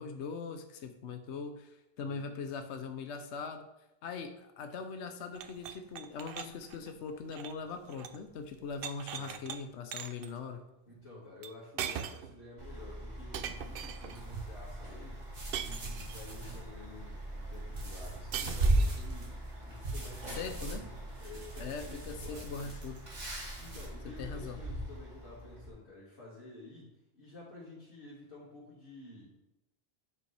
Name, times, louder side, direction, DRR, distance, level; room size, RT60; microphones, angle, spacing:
voice 1, 0.0-3.7 4.0-10.6 20.4-20.8 21.6-23.0 24.0-24.6, left 5 dB, 80° left, 6 dB, 1.0 m, -41 dB
sound 1, 5.3-8.2 8.5-9.6 9.9-10.3 11.4-11.5 11.8-12.4 13.3-14.2 15.5-16.3 18.3-19.1, right 8 dB, 65° right, 0.7 m, -41 dB
voice 2, 10.9-15.2 15.6-22.8 23.6-29.4, left 2 dB, 65° left, -10 dB, 2.5 m, -51 dB
Truck, 12.6-25.7, right 1 dB, 40° right, 2.3 m, -44 dB
sound 2, 14.1-23.9, right 2 dB, 90° right, 2.0 m, -37 dB
8.6 x 5.2 x 3.4 m, 0.89 s
omnidirectional pair, 1.2 m